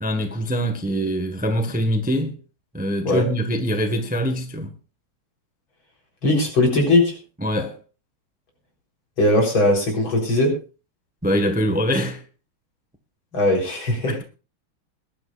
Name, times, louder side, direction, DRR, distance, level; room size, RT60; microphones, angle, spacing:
voice 1, 0.0-2.4 2.7-4.7 7.4-7.8 11.2-12.2, equal, 5° right, 1.0 m, -23 dB
voice 2, 6.2-7.1 9.2-10.6 13.3-14.2, left 1 dB, 65° left, 4.8 m, -19 dB
22.0 x 11.5 x 2.5 m
omnidirectional pair, 2.3 m